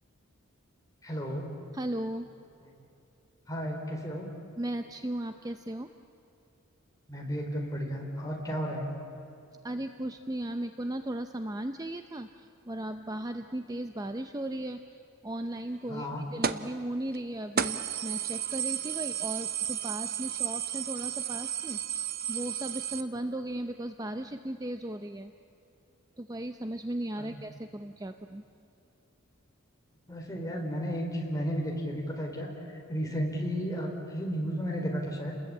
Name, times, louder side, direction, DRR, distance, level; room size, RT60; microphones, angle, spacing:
voice 1, 1.0-1.5 3.5-4.3 7.1-8.9 15.9-16.2 27.2-27.4 30.1-35.3, equal, 15° left, 0 dB, 4.1 m, -33 dB
voice 2, 1.7-2.3 4.6-5.9 9.6-25.3 26.2-28.4, right 1 dB, 15° right, 7 dB, 0.6 m, -36 dB
sound 1, 16.4-16.7 17.1-17.2 17.6-23.0, right 9 dB, 45° right, 0.8 m, -33 dB
29.5 x 21.0 x 8.7 m, 2.7 s
head